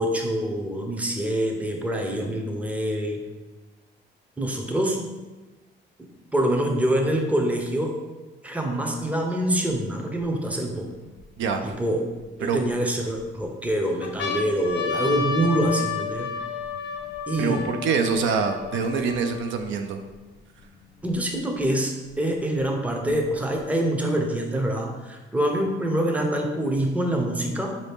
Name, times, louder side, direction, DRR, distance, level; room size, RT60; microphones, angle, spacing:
voice 1, 0.0-3.2 4.4-5.0 6.3-8.0 8.4-10.9 11.6-12.0 12.4-16.3 17.3-17.7 21.0-27.8, right 1 dB, 5° right, 2 dB, 0.5 m, -25 dB
sound 1, 9.7-9.8 10.5-11.7 12.4-13.2 13.7-13.8 14.0-19.6 20.4-20.5 20.6-21.6 22.6-23.6, left 5 dB, 70° left, 0.6 m, -32 dB
voice 2, 17.4-20.0, right 5 dB, 75° right, 6 dB, 0.4 m, -25 dB
4.0 x 2.7 x 3.4 m, 1.2 s
cardioid pair, 90°, 20 cm